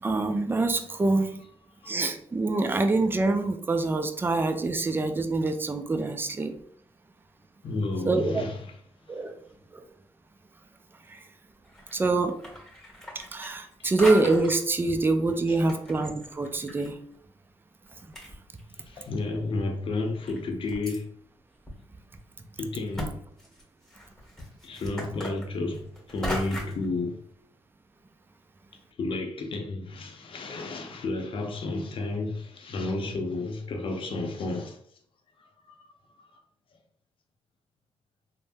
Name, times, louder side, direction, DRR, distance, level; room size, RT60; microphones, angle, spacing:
voice 1, 0.0-1.4 1.9-6.6 8.1-8.4 9.1-9.4 9.7-9.8 11.9-12.4 13.3-17.0, right 3 dB, 20° right, 0.4 m, -25 dB
voice 2, 7.6-8.8 13.8-13.9 15.5-15.6 18.9-21.1 22.6-23.2 24.6-27.2 29.0-34.8 35.4-35.9, left 2 dB, 55° left, 0.6 m, -32 dB
sound 1, 11.6-12.0 12.3-13.7 14.0-14.6 15.3-16.9 17.1-17.2 17.9-18.0 18.1-19.0 19.5-19.6 20.3-21.0 21.7-21.8 22.1-22.2 22.9-23.1 23.4-26.9, equal, 5° left, 1.4 m, -37 dB
3.3 x 2.1 x 2.6 m
supercardioid pair, 65°, 10 cm